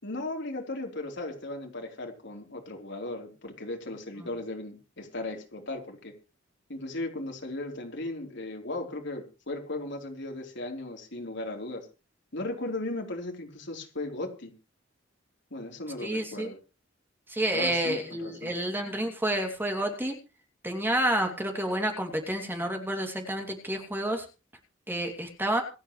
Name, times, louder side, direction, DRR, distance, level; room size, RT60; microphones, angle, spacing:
voice 1, 0.0-6.1 6.7-11.9 12.3-14.5 15.5-16.6 17.5-18.5, left 2 dB, 60° left, 2 dB, 3.9 m, -36 dB
voice 2, 16.0-16.5 17.3-20.1 20.6-24.2 24.9-25.6, right 1 dB, 10° right, 3 dB, 2.8 m, -29 dB
26.5 x 9.0 x 3.2 m, 0.32 s
head